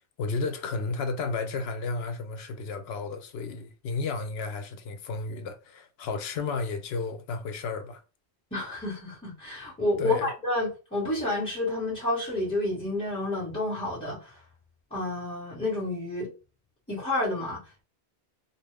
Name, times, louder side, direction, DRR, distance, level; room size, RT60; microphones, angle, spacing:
voice 1, 0.2-8.0 10.0-10.3, left 4 dB, 70° left, 0.8 m, -32 dB
voice 2, 8.5-14.4 14.9-16.3 16.9-17.8, left 2 dB, 5° left, 1.4 m, -30 dB
2.7 x 2.3 x 3.3 m
omnidirectional pair, 1.1 m